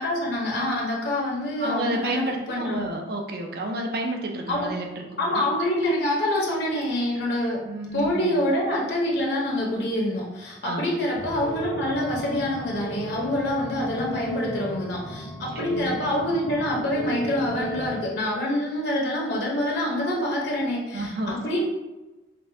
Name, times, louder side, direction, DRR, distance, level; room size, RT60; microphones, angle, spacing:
voice 1, 0.0-2.9 4.5-4.7 5.2-7.6 7.9-21.6, left 1 dB, 65° left, -3 dB, 0.8 m, -26 dB
voice 2, 1.6-5.4 7.7-8.4 10.6-10.9 15.5-15.9 20.9-21.4, right 1 dB, 55° right, 2 dB, 0.5 m, -30 dB
sound 1, 11.2-18.1, equal, 20° left, 0.5 m, -36 dB
5.3 x 2.2 x 2.7 m, 1.1 s
head